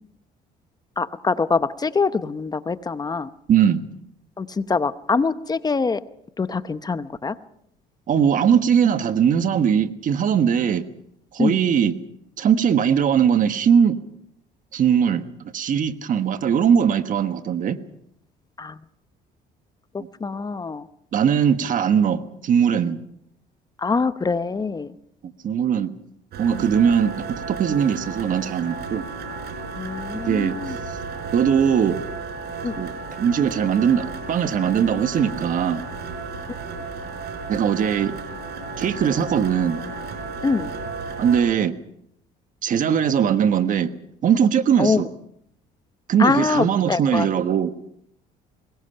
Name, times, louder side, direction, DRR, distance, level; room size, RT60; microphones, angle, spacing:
voice 1, 1.0-3.3 4.4-6.0 6.4-7.3 11.4-11.6 18.6-18.8 20.2-20.8 23.8-24.9 29.8-30.8 32.6-32.8 36.7-36.8 40.4-40.7 44.8-45.0 46.2-47.3, left 4 dB, 25° left, 13 dB, 0.8 m, -24 dB
voice 2, 3.5-3.8 8.1-10.9 11.3-12.0 12.4-14.0 14.7-15.2 15.5-17.8 21.1-23.0 25.4-25.9 26.4-29.0 30.3-30.6 31.3-32.0 32.8-32.9 33.2-35.8 37.5-38.1 38.8-39.8 41.2-41.7 42.6-43.9 44.2-45.1 46.1-47.7, right 8 dB, 50° right, 10 dB, 1.4 m, -20 dB
sound 1, 26.3-41.4, right 4 dB, 75° right, 4.9 m, -33 dB
23.5 x 21.0 x 5.7 m, 0.74 s
cardioid pair, 110°, 17 cm